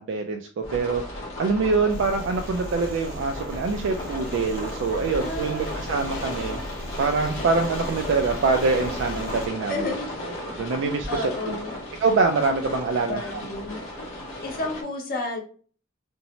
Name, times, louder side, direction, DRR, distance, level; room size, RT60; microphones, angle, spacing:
voice 1, 0.0-6.6 7.0-9.9 10.2-11.6 12.0-13.4, right 4 dB, 65° right, 4 dB, 0.3 m, -25 dB
sound 1, 0.6-14.8, left 1 dB, 85° left, 0.9 m, -35 dB
sound 2, 1.9-9.5, equal, 90° right, 0.9 m, -38 dB
voice 2, 5.1-5.8 9.7-10.1 11.1-11.8 13.0-13.8 14.4-15.4, left 2 dB, 45° left, 2 dB, 0.7 m, -31 dB
2.6 x 2.0 x 2.9 m, 0.42 s
head